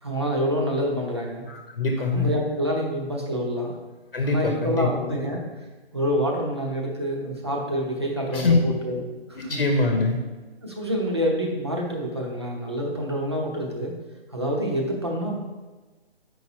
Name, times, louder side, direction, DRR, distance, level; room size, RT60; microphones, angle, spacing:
voice 1, 0.0-1.5 2.0-3.8 4.2-5.4 5.9-9.0 9.3-9.6 10.6-13.9 14.3-15.4, equal, 25° right, -1 dB, 0.9 m, -27 dB
voice 2, 1.5-2.3 4.1-4.9 8.3-8.6 9.3-10.2, left 3 dB, 60° left, 3 dB, 1.1 m, -23 dB
8.9 x 5.5 x 2.9 m, 1.2 s
hypercardioid pair, 180°, 31 cm